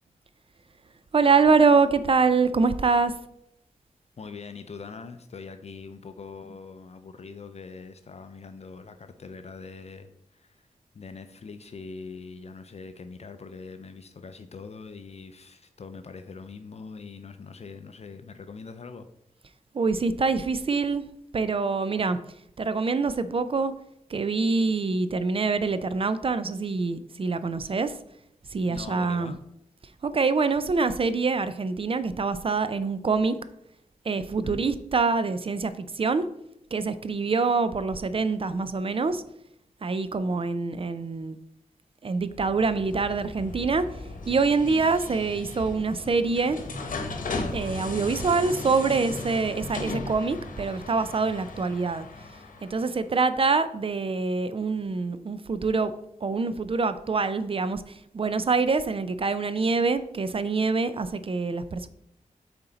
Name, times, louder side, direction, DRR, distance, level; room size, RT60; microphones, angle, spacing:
voice 1, 1.1-3.1 19.7-21.0 21.3-22.2 22.6-23.7 24.1-27.9 28.5-29.3 30.0-33.4 34.0-36.3 36.7-39.2 39.8-41.4 42.0-43.9 44.3-46.6 47.5-52.1 52.6-55.9 56.2-61.9, right 4 dB, 45° right, 12 dB, 0.4 m, -25 dB
voice 2, 4.2-10.7 10.9-19.1 28.7-29.4 34.4-34.6 44.6-44.8, left 4 dB, 50° left, 9 dB, 0.5 m, -42 dB
sound 1, 42.3-53.0, left 2 dB, 85° left, 1.0 m, -37 dB
7.7 x 4.3 x 3.9 m, 0.78 s
wide cardioid pair, 125°, 14 cm